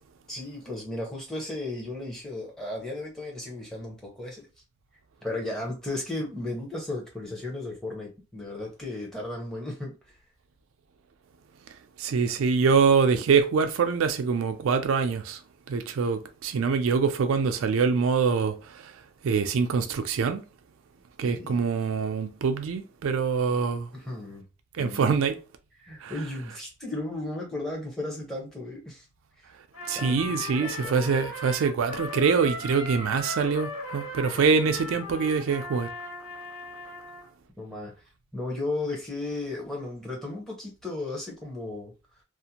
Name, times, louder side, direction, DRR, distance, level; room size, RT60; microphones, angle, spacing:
voice 1, 0.3-4.5 5.2-9.9 21.2-21.6 23.9-24.4 24.8-25.0 25.8-29.1 29.9-31.2 37.6-37.9 38.3-41.9, left 2 dB, ahead, 0.7 m, -35 dB
voice 2, 12.0-15.4 15.7-18.9 19.2-20.4 21.2-23.9 24.7-25.4 26.0-26.1 29.9-35.9, right 5 dB, 85° right, 0.4 m, -24 dB
Trumpet, 29.7-37.3, left 1 dB, 85° left, 1.3 m, -38 dB
2.5 x 2.0 x 2.8 m
head